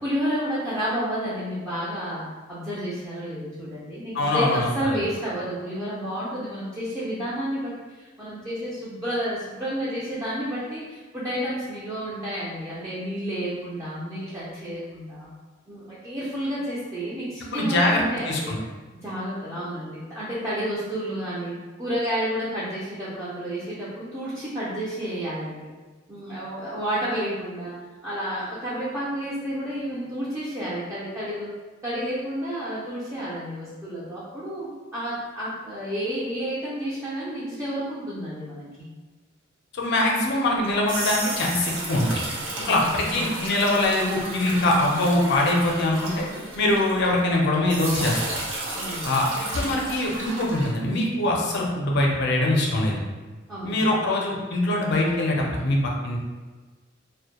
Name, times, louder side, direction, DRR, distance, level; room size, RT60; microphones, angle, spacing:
voice 1, 0.0-15.3 15.7-18.5 19.0-25.7 26.1-27.7 28.0-31.5 31.8-38.9 42.5-43.3 48.7-49.2 53.5-53.9, equal, 15° right, -10 dB, 0.4 m, -31 dB
voice 2, 4.1-5.0 17.5-18.6 39.7-42.2 42.6-46.2 46.6-48.4 49.0-49.3 49.5-53.0 53.6-56.2, left 1 dB, 60° left, -1 dB, 0.5 m, -23 dB
sound 1, 40.6-47.3 47.7-50.7, right 2 dB, 80° right, 0.5 m, -33 dB
2.1 x 2.1 x 2.8 m, 1.3 s
head